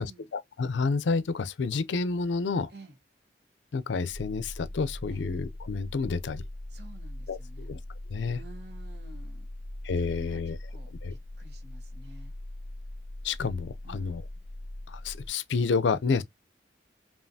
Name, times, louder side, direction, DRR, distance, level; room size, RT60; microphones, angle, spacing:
voice 1, 0.0-2.7 3.7-6.4 7.3-7.8 8.1-8.4 9.8-10.6 11.0-11.1 13.2-14.2 14.9-16.2, left 4 dB, 85° left, 0.5 m, -29 dB
sound 1, 4.1-15.3, left 1 dB, 60° left, 1.1 m, -41 dB
voice 2, 6.7-7.7 8.3-9.5 10.0-12.3 13.8-14.2, right 2 dB, 65° right, 1.0 m, -51 dB
5.5 x 2.4 x 2.7 m
head